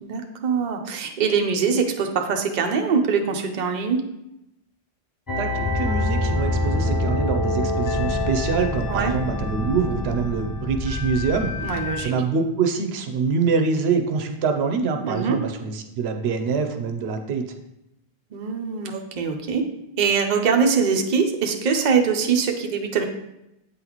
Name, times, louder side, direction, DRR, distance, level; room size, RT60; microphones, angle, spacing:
voice 1, 0.0-4.0 8.9-9.1 11.6-12.1 15.0-15.4 18.3-19.6 20.0-23.0, right 5 dB, 50° right, 3 dB, 0.7 m, -23 dB
sound 1, 5.3-12.0, left 1 dB, 30° left, 0.4 m, -25 dB
voice 2, 5.4-17.4, right 5 dB, 85° right, 5 dB, 0.9 m, -25 dB
8.2 x 4.0 x 3.0 m, 0.87 s
omnidirectional pair, 1.0 m